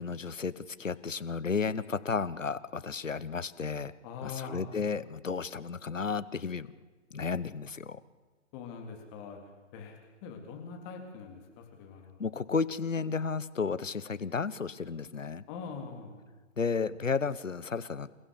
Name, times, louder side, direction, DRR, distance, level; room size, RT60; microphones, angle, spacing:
voice 1, 0.0-3.9 4.2-6.7 7.1-8.0 12.2-15.4 16.6-18.1, left 5 dB, 85° left, 16 dB, 1.2 m, -33 dB
voice 2, 4.0-4.8 8.5-9.4 9.7-12.2 15.5-16.2, left 5 dB, 25° left, 3 dB, 3.6 m, -43 dB
28.0 x 16.0 x 7.2 m, 1.4 s
figure-of-eight pair, 130°, 38 cm